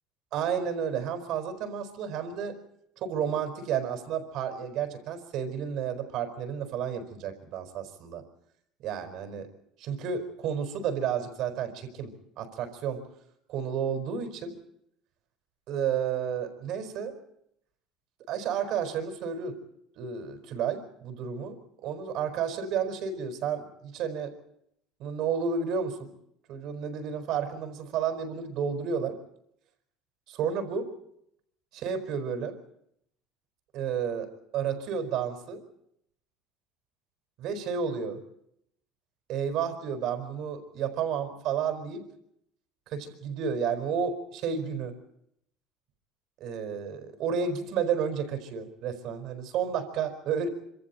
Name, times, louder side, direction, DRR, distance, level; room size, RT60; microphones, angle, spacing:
voice 1, 0.3-2.6 3.0-8.2 8.8-9.5 9.8-13.0 13.5-14.5 15.7-17.1 18.3-19.6 20.0-21.6 21.8-24.3 25.0-26.1 26.5-29.2 30.3-30.9 31.7-32.6 33.7-35.6 37.4-38.2 39.3-42.0 42.9-44.9 46.4-50.5, right 7 dB, 55° right, 9 dB, 4.8 m, -31 dB
26.5 x 26.5 x 4.4 m, 0.73 s
cardioid pair, 140°, 0 cm